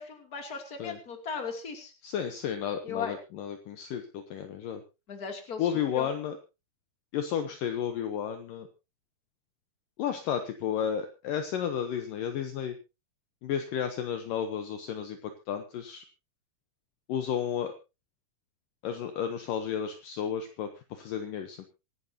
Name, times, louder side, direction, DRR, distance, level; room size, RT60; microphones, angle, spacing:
voice 1, 0.0-1.9 2.8-3.1 5.1-6.1, left 5 dB, 25° left, 4 dB, 2.8 m, -37 dB
voice 2, 2.0-4.8 5.6-6.4 7.1-8.7 10.0-12.8 13.4-16.0 17.1-17.7 18.8-21.7, left 8 dB, 70° left, 7 dB, 2.4 m, -32 dB
26.0 x 10.5 x 2.8 m, 0.28 s
omnidirectional pair, 4.5 m